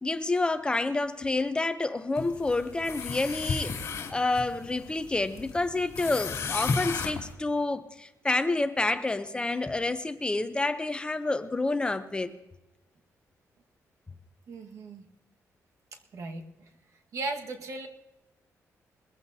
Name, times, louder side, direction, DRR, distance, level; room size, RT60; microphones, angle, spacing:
voice 1, 0.0-12.3, left 2 dB, 15° left, 0.7 m, -29 dB
sound 1, 2.1-7.3, left 4 dB, 55° left, 2.7 m, -34 dB
voice 2, 14.5-15.0 15.9-16.7 17.1-17.9, right 3 dB, 65° right, 1.6 m, -37 dB
21.5 x 15.0 x 2.8 m
cardioid pair, 140°, 6 cm